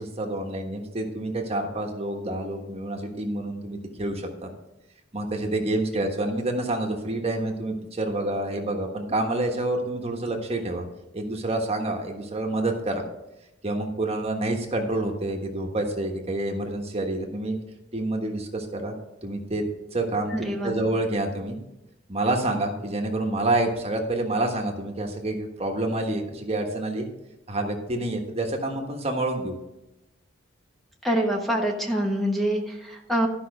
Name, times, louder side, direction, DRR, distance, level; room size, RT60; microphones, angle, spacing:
voice 1, 0.0-4.5 5.1-10.8 11.1-13.0 13.6-17.6 17.9-18.9 19.2-19.6 19.9-21.6 22.1-27.1 27.5-29.5, right 2 dB, 35° right, 2 dB, 1.4 m, -28 dB
voice 2, 20.3-20.8 31.0-33.3, right 1 dB, ahead, 0 dB, 1.2 m, -25 dB
12.5 x 5.5 x 5.4 m, 0.94 s
head